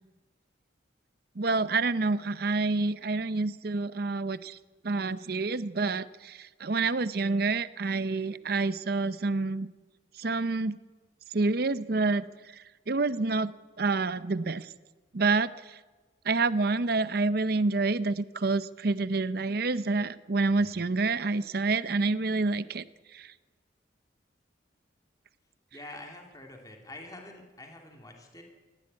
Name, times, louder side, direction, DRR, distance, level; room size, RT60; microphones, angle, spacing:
voice 1, 1.4-4.6 4.8-9.7 10.2-10.8 11.3-12.3 12.9-14.7 15.1-15.5 16.3-22.8 23.1-23.3, right 3 dB, 55° right, 15 dB, 0.7 m, -28 dB
voice 2, 20.5-20.8 25.7-28.4, left 2 dB, 20° left, 2 dB, 2.6 m, -46 dB
18.5 x 15.0 x 9.6 m, 1.3 s
head